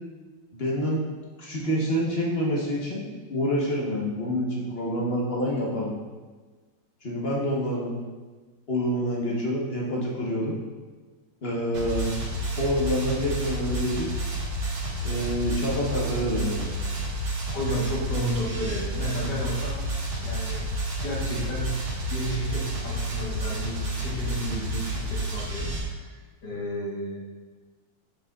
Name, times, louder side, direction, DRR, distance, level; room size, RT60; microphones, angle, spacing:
voice 1, 0.5-1.0 1.4-3.0 3.3-5.9 7.0-7.9 8.7-10.5 11.4-12.1 12.6-14.1 15.0-16.7, equal, 35° left, -4 dB, 1.1 m, -27 dB
sound 1, 11.7-25.8, right 1 dB, 90° right, 2.1 m, -30 dB
voice 2, 17.5-19.8 20.2-20.6 21.0-21.8 22.1-26.2 26.4-27.3, equal, 60° left, -4 dB, 1.8 m, -32 dB
7.4 x 6.3 x 2.4 m, 1.4 s
omnidirectional pair, 2.2 m